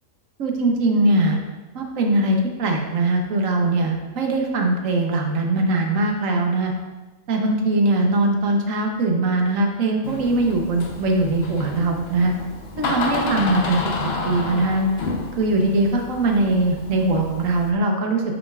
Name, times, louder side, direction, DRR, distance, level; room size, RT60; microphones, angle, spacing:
voice 1, 0.4-1.4 1.7-6.7 7.3-12.3 12.8-13.8 14.3-14.9 15.4-18.2, right 2 dB, 90° right, 2 dB, 1.3 m, -21 dB
Door, 10.0-17.7, left 3 dB, 55° left, 1.0 m, -30 dB
7.6 x 6.3 x 2.4 m, 1.2 s
omnidirectional pair, 1.3 m